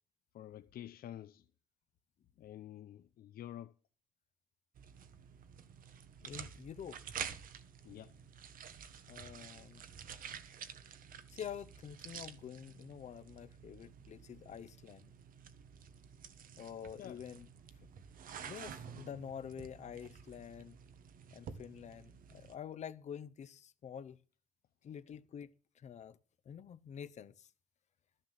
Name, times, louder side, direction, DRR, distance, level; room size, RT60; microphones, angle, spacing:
voice 1, 0.3-1.4 2.4-3.7 7.8-8.1 8.9-9.0 12.1-12.2 17.0-17.2, left 11 dB, 85° left, 0.7 m, -49 dB
sound 1, 4.7-22.5, right 7 dB, 70° right, 1.3 m, -50 dB
voice 2, 6.2-7.0 9.1-9.8 11.3-15.1 16.6-17.5 18.4-20.8 21.3-24.2 24.8-26.2 26.4-27.5, left 8 dB, 50° left, 0.8 m, -47 dB
13.5 x 6.7 x 7.5 m
wide cardioid pair, 175°, 15 cm